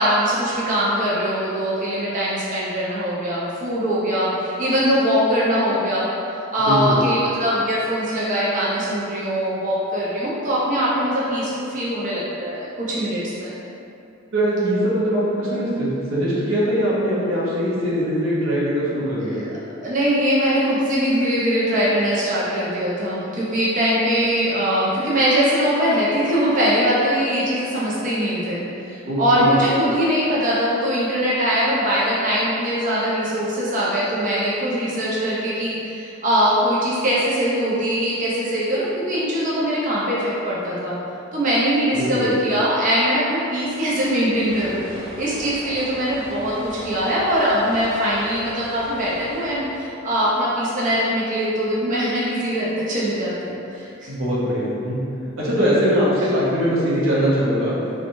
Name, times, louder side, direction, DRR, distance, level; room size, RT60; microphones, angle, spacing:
voice 1, 0.0-6.1 6.5-13.5 19.3-19.5 19.8-41.0 41.3-54.1, equal, 40° right, -7 dB, 0.4 m, -22 dB
voice 2, 6.6-7.0 14.3-19.4 29.0-29.6 41.9-42.3 54.1-55.0 55.4-57.8, equal, 90° right, -7 dB, 0.7 m, -21 dB
sound 1, 43.4-51.5, equal, 45° left, 0.9 m, -40 dB
2.9 x 2.2 x 2.5 m, 2.7 s
head